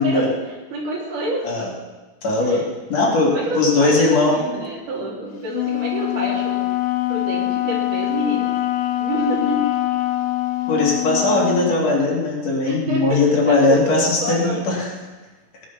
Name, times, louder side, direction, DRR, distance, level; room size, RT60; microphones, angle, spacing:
voice 1, 0.0-1.6 2.4-2.6 3.2-6.7 7.1-8.6 9.0-9.8 12.6-14.6, right 1 dB, 85° right, -4 dB, 4.6 m, -27 dB
voice 2, 2.2-2.6 2.9-4.4 10.7-14.9, left 3 dB, 60° left, -2 dB, 3.6 m, -19 dB
Wind instrument woodwind instrument, 5.5-11.8, left 15 dB, 75° left, 1.4 m, -23 dB
18.0 x 10.0 x 5.8 m, 1.3 s
omnidirectional pair, 3.5 m